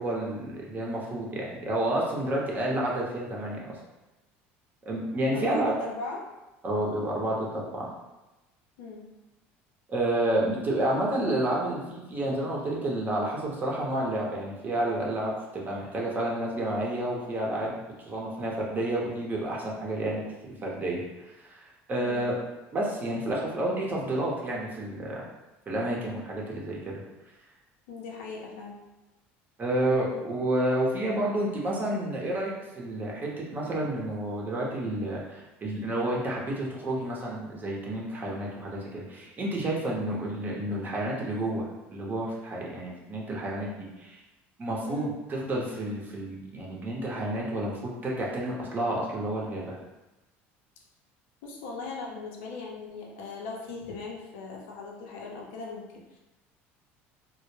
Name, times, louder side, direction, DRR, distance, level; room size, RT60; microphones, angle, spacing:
voice 1, 0.0-3.7 4.9-5.7 6.6-7.9 9.9-17.8 18.1-21.6 21.9-22.3 22.7-25.3 25.7-26.9 29.6-44.2 44.6-47.7 48.0-49.8, right 1 dB, 30° right, -3 dB, 0.7 m, -30 dB
voice 2, 5.3-6.2 8.8-9.1 22.0-22.3 27.9-28.8 44.8-45.2 51.4-56.2, left 4 dB, 85° left, -2 dB, 0.5 m, -39 dB
2.1 x 2.0 x 3.1 m, 1.0 s
supercardioid pair, 95°, 6 cm